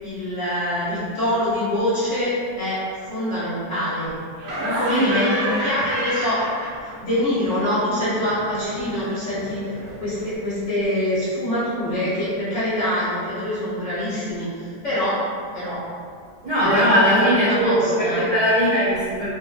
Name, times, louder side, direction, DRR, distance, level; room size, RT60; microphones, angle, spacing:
voice 1, 0.0-4.2 4.7-6.4 6.8-9.6 10.0-15.2 15.5-15.8 16.6-18.2, left 1 dB, 50° left, -12 dB, 1.2 m, -25 dB
Laughter, 4.4-7.2 7.4-10.4, right 1 dB, 65° right, 1.0 m, -31 dB
voice 2, 4.6-5.7 16.4-19.3, equal, 30° right, -13 dB, 1.3 m, -20 dB
2.9 x 2.5 x 2.2 m, 2.2 s
omnidirectional pair, 1.9 m